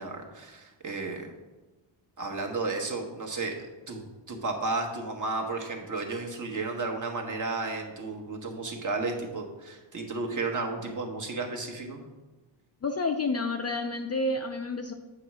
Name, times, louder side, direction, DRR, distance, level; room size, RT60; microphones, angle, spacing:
voice 1, 0.0-1.3 2.2-12.0, right 3 dB, 40° right, 2 dB, 1.1 m, -33 dB
voice 2, 12.8-14.9, left 2 dB, 35° left, 5 dB, 0.4 m, -29 dB
7.9 x 3.2 x 6.0 m, 1.2 s
wide cardioid pair, 115°, 48 cm